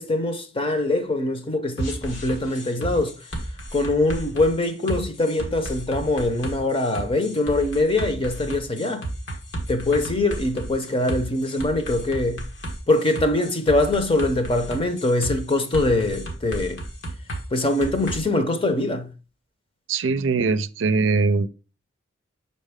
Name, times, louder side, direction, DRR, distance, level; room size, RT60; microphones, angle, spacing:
voice 1, 0.0-3.1 3.7-9.1 9.7-12.4 12.9-16.8 17.5-19.1, left 2 dB, 30° left, 0.7 m, -23 dB
sound 1, 1.8-18.2, right 1 dB, 80° left, 1.5 m, -33 dB
voice 2, 19.9-21.5, right 4 dB, 75° right, 0.5 m, -21 dB
6.4 x 4.3 x 3.5 m
head